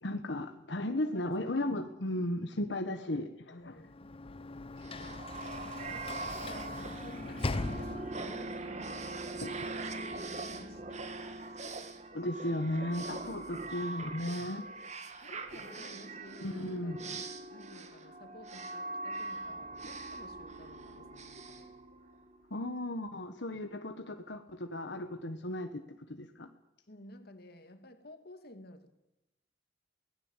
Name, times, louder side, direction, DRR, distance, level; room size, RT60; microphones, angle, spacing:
voice 1, 0.0-3.7 9.4-9.6 12.1-14.7 16.4-17.2 22.5-26.5, left 1 dB, 85° left, 1.4 m, -36 dB
voice 2, 1.0-1.3 3.5-4.2 5.6-9.6 10.2-11.0 13.2-13.3 14.8-14.9 15.2-17.0 17.5-21.8 26.9-28.9, left 1 dB, 60° left, 2.5 m, -53 dB
Sliding door / Slam, 3.7-8.5, left 2 dB, 30° left, 0.7 m, -39 dB
sound 1, 4.8-22.4, right 2 dB, 40° right, 2.0 m, -42 dB
23.5 x 18.5 x 7.5 m
head